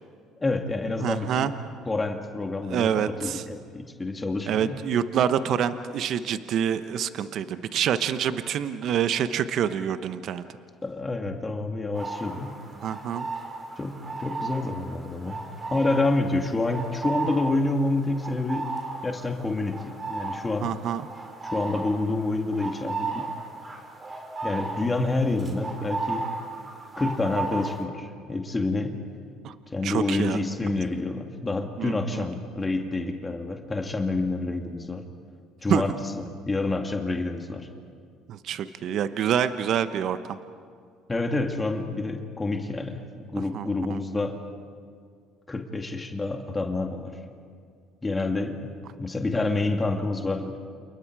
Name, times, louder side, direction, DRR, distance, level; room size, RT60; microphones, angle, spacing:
voice 1, 0.4-1.5 1.9-4.8 10.8-12.6 13.8-15.4 15.7-18.7 19.0-20.7 21.4-23.3 24.4-26.3 27.0-29.0 29.7-35.0 35.6-37.7 41.1-44.4 45.5-47.2 48.0-50.6, left 2 dB, 20° left, 4 dB, 2.5 m, -28 dB
voice 2, 1.0-1.5 2.6-3.4 4.5-10.4 12.8-13.3 20.6-21.0 29.4-29.5 29.8-30.4 31.8-32.3 35.7-35.8 38.3-40.4 43.5-44.0, right 9 dB, 60° right, 11 dB, 1.0 m, -27 dB
sound 1, 11.9-27.8, right 3 dB, 30° right, 5.0 m, -35 dB
29.0 x 29.0 x 4.8 m, 2.2 s
hypercardioid pair, 70°, 0 cm